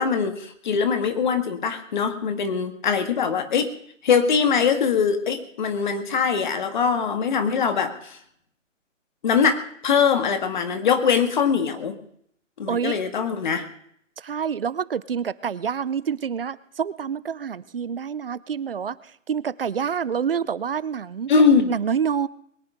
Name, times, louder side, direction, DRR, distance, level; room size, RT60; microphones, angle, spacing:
voice 1, 0.0-3.7 4.0-8.2 9.2-12.0 12.6-13.7 21.3-21.7, left 6 dB, 35° left, 8 dB, 1.9 m, -22 dB
voice 2, 12.7-13.0 14.2-19.0 19.3-21.3 21.7-22.3, right 7 dB, 45° right, 19 dB, 0.6 m, -27 dB
22.0 x 9.6 x 5.1 m, 0.67 s
figure-of-eight pair, 155°, 39 cm